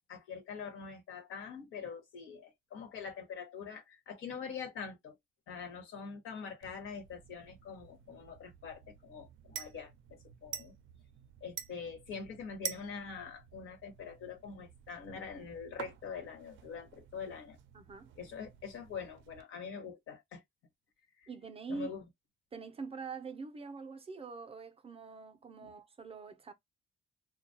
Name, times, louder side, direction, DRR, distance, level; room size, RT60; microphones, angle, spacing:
voice 1, 0.1-5.2 5.5-10.7 11.4-17.6 18.2-20.4 21.2-21.3 21.7-22.0 25.6-25.7, left 6 dB, 85° left, 1.1 m, -44 dB
sound 1, 6.6-19.4, right 9 dB, 75° right, 0.5 m, -49 dB
voice 2, 17.7-18.1 21.3-21.9 22.5-26.5, right 4 dB, 30° right, 0.6 m, -44 dB
2.3 x 2.2 x 2.6 m
cardioid pair, 90°, 20 cm